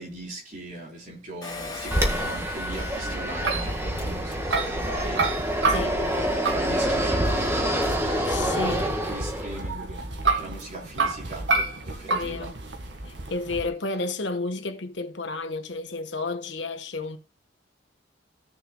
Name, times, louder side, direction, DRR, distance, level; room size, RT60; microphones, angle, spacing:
voice 1, 0.0-10.1 10.3-12.6, right 1 dB, 45° right, 4.0 m, -39 dB
Engine, 1.4-4.9 5.4-5.5 5.6-5.7, left 3 dB, 20° left, 2.3 m, -40 dB
sound 1, 1.6-13.7, right 3 dB, 75° right, 1.8 m, -31 dB
Fixed-wing aircraft airplane, 1.9-9.7, equal, 15° right, 1.5 m, -27 dB
voice 2, 5.7-6.0 8.3-8.9 12.1-12.6 13.0-17.2, left 3 dB, 70° left, 1.3 m, -31 dB
17.0 x 6.6 x 2.3 m
head